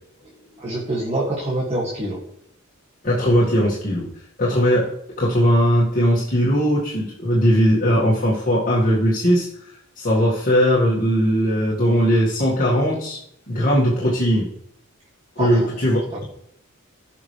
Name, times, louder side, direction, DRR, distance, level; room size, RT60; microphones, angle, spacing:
voice 1, 0.6-2.2 15.4-15.7 16.1-16.2, right 1 dB, 30° right, -4 dB, 2.3 m, -25 dB
voice 2, 3.0-4.1 4.4-4.9 5.2-9.7 10.0-13.2 13.5-14.5 15.4-16.2, equal, 40° left, -6 dB, 2.1 m, -19 dB
16.0 x 6.1 x 3.4 m, 0.71 s
head